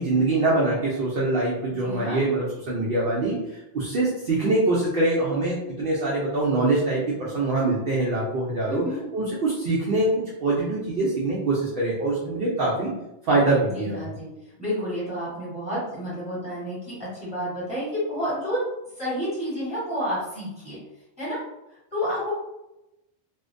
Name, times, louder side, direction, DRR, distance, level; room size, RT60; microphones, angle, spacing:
voice 1, 0.0-8.8 9.1-12.9 13.2-14.0, right 2 dB, 60° right, -5 dB, 0.7 m, -24 dB
voice 2, 1.8-2.2 8.6-9.0 12.8-12.9 13.7-14.3 14.6-18.6 19.0-20.8 21.2-21.4 21.7-22.3, equal, 5° right, -9 dB, 1.0 m, -30 dB
2.5 x 2.1 x 2.5 m, 0.92 s
omnidirectional pair, 1.2 m